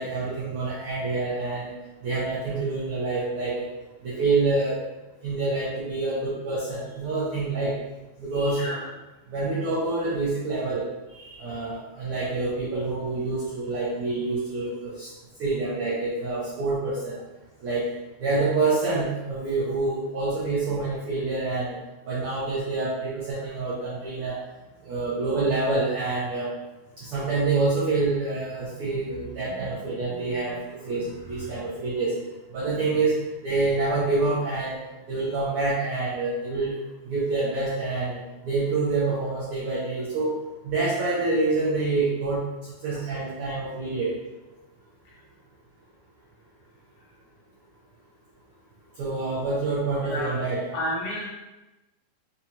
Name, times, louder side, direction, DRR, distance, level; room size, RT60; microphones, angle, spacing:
voice 1, 0.0-1.7 2.0-3.7 4.0-4.8 5.2-7.7 8.2-8.7 9.3-15.1 15.4-17.2 17.6-17.8 18.2-21.8 22.1-24.4 24.8-26.5 27.0-32.1 32.5-34.8 35.1-36.8 37.0-40.4 40.6-42.4 42.8-44.1 49.0-50.6, right 3 dB, 80° right, -7 dB, 1.2 m, -27 dB
voice 2, 50.0-50.3 50.7-51.2, left 1 dB, 70° left, -6 dB, 2.1 m, -31 dB
5.0 x 2.3 x 2.7 m, 1.1 s
omnidirectional pair, 3.4 m